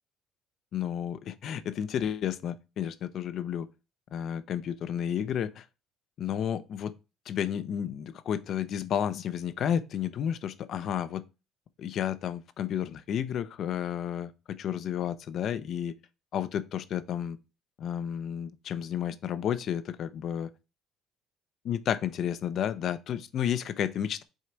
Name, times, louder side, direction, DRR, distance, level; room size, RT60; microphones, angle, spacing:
voice 1, 0.7-3.7 4.1-5.6 6.2-6.9 7.3-11.2 11.8-15.9 16.3-17.4 17.8-20.5 21.6-24.2, left 9 dB, 50° left, 0.6 m, -31 dB
6.4 x 3.9 x 4.5 m
cardioid pair, 135°, 0 cm